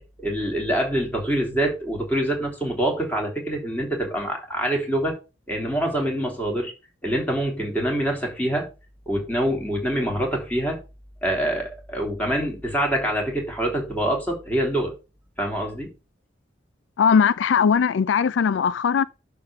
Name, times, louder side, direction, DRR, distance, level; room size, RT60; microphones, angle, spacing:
voice 1, 0.0-5.2 5.5-6.7 7.0-8.7 9.1-10.8 11.2-14.9 15.4-15.9, right 1 dB, 10° left, 3.3 m, -25 dB
voice 2, 17.0-19.0, left 6 dB, 80° left, 0.4 m, -19 dB
10.5 x 3.7 x 6.9 m
head